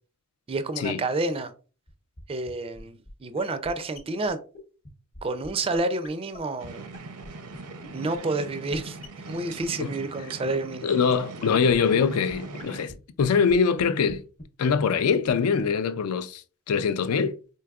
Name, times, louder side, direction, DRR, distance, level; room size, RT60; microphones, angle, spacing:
voice 1, 0.5-1.5 2.3-4.4 5.2-6.9 7.9-9.0 9.3-10.9, right 2 dB, 25° right, 0.4 m, -29 dB
sound 1, 1.9-2.0 2.2-2.3 2.5-2.6 2.8-2.9 3.1-3.2 3.4-3.5 3.6-3.7 3.9-4.0 4.3-4.4 4.5-4.6 4.8-4.9 5.1-5.2 5.4-5.5 5.7-5.8 6.0-6.1 6.3-6.4 6.6-6.7 6.9-7.3 7.5-7.6 7.8-7.9 8.1-8.2 8.4-8.5 8.7-8.8 9.0-9.1 9.3-9.4 9.6-9.7 11.1-11.2 11.4-11.5 11.7-11.8 12.0-12.1 12.3-12.4 12.6-12.7 12.9-13.0 13.2-13.5 13.8-13.9 14.1-14.2 14.4-14.5 14.7-14.8 15.0-15.1 15.3-15.4 15.6-15.7, left 2 dB, 30° left, 0.7 m, -44 dB
sound 2, 6.6-12.9, right 3 dB, 85° right, 0.7 m, -41 dB
voice 2, 10.8-14.2 14.6-17.3, left 6 dB, 75° left, 0.4 m, -23 dB
4.6 x 2.8 x 2.3 m
head